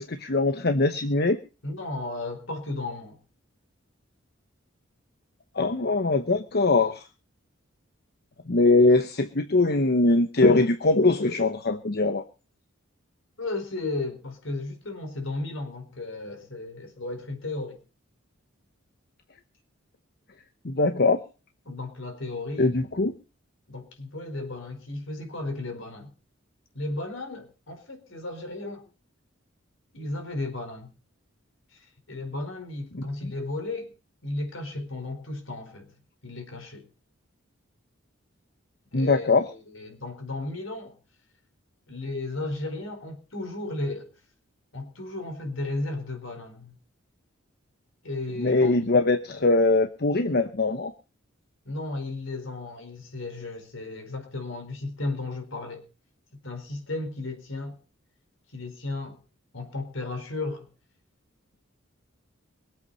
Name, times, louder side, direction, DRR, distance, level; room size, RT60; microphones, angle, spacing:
voice 1, 0.0-1.4 5.6-7.1 8.5-12.2 20.6-21.2 22.6-23.1 33.2-33.3 38.9-39.4 48.4-50.9, left 2 dB, 50° left, 1.0 m, -22 dB
voice 2, 1.6-3.2 13.4-17.8 21.6-22.7 23.7-26.1 26.7-28.8 29.9-30.9 31.7-33.9 34.2-35.9 36.2-36.9 38.9-39.3 39.5-40.9 41.9-44.1 44.7-46.7 48.0-48.9 51.6-55.8 56.4-57.8 58.5-59.2 59.5-60.7, left 2 dB, 70° left, 4.6 m, -34 dB
23.0 x 8.2 x 5.6 m
head